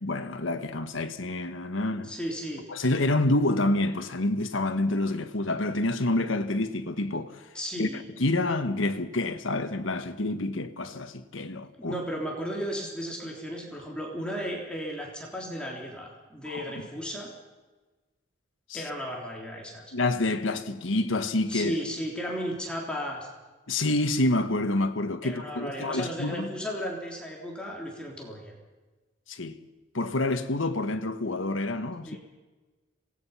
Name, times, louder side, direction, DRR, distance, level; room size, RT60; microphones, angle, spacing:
voice 1, 0.0-2.1 2.7-7.4 7.8-7.9 8.2-11.9 16.5-16.8 18.7-18.8 19.9-21.8 23.7-26.5 29.3-29.6 29.9-32.2, left 2 dB, 90° left, 1.4 m, -28 dB
voice 2, 2.0-2.7 7.5-8.0 11.8-17.3 18.7-19.8 21.5-23.3 25.2-28.6 32.1-32.2, equal, 5° left, 3.5 m, -35 dB
26.5 x 19.0 x 5.7 m
head